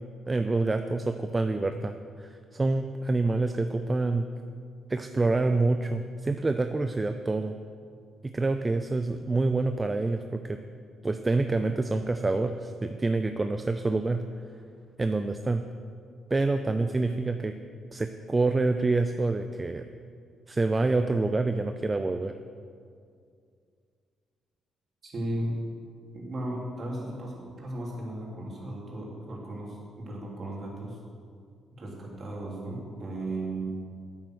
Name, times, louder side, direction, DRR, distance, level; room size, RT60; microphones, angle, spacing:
voice 1, 0.3-4.3 4.9-7.5 8.2-10.6 11.0-14.2 15.0-15.6 16.3-17.5 17.9-19.8 20.5-22.3, right 3 dB, 25° right, 8 dB, 0.5 m, -27 dB
voice 2, 25.0-25.6 26.1-31.0 31.7-33.7, right 1 dB, 45° right, -3 dB, 3.3 m, -35 dB
9.3 x 8.8 x 6.4 m, 2.2 s
cardioid pair, 90°, 0 cm